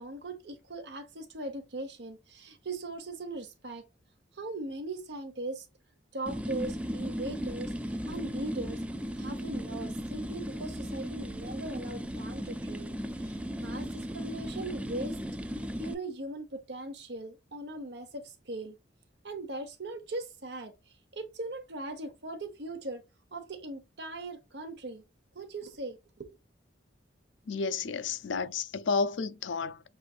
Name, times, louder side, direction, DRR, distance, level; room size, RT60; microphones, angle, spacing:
voice 1, 0.0-3.8 4.3-5.7 6.1-8.8 9.2-15.2 15.5-18.8 19.2-23.0 23.3-25.0 25.3-26.3, right 2 dB, 65° right, 1.0 m, -40 dB
sound 1, 6.3-15.9, equal, 5° right, 0.3 m, -36 dB
voice 2, 27.5-29.8, left 4 dB, 85° left, 0.5 m, -31 dB
6.6 x 2.5 x 2.4 m
head